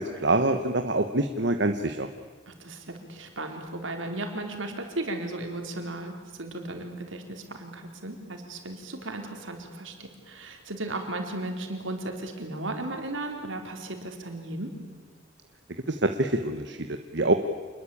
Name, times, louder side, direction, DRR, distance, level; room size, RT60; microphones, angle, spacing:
voice 1, 0.0-2.1 15.9-17.3, right 2 dB, 60° right, 6 dB, 1.2 m, -25 dB
voice 2, 2.5-6.1 6.4-14.7, right 2 dB, 75° right, 4 dB, 4.1 m, -35 dB
27.5 x 21.0 x 8.7 m, 1.4 s
head